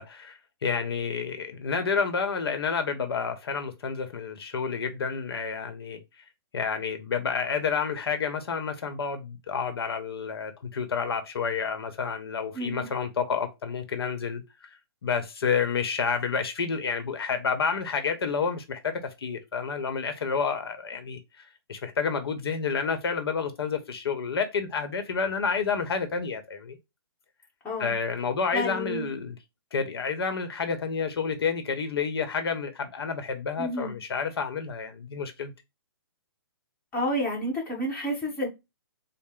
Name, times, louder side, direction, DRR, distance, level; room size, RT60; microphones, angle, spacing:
voice 1, 0.0-6.0 6.5-14.8 15.0-26.8 27.8-29.3 29.7-35.5, left 5 dB, 75° left, 0.9 m, -29 dB
voice 2, 12.5-12.9 27.6-27.9 28.5-29.1 33.6-33.9 36.9-38.5, equal, 10° left, 1.5 m, -30 dB
4.2 x 2.1 x 3.7 m
hypercardioid pair, 150°, 13 cm